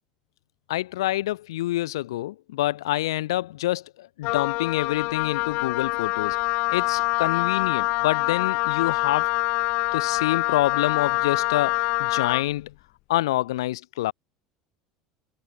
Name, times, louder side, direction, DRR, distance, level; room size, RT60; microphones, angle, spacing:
voice 1, 0.7-6.4 6.7-9.3 9.9-12.7 13.1-14.1, left 15 dB, 85° left, 4.6 m, -27 dB
Wind instrument woodwind instrument, 4.2-12.5, left 24 dB, 65° left, 4.1 m, -25 dB
hypercardioid pair, 90°, 2 cm